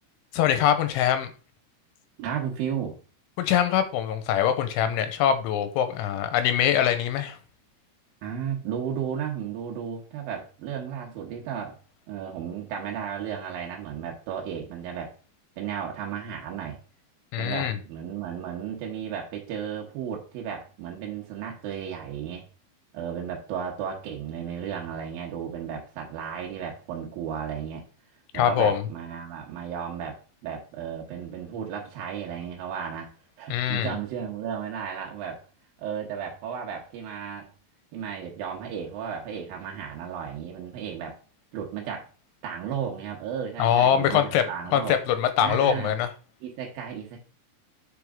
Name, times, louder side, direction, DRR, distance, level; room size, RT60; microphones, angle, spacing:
voice 1, 0.3-1.3 3.4-7.4 17.3-17.8 28.3-28.8 33.5-33.9 43.6-44.4 44.7-46.1, left 9 dB, 90° left, 3.1 m, -23 dB
voice 2, 2.2-3.0 8.2-11.8 12.1-15.1 15.6-16.8 17.4-22.5 22.9-27.8 28.3-33.1 33.4-35.4 35.8-37.5 37.9-41.2 41.5-42.1 42.4-45.0 45.4-46.0 46.4-47.2, right 8 dB, 75° right, 2.2 m, -34 dB
8.1 x 5.1 x 3.6 m
omnidirectional pair, 5.4 m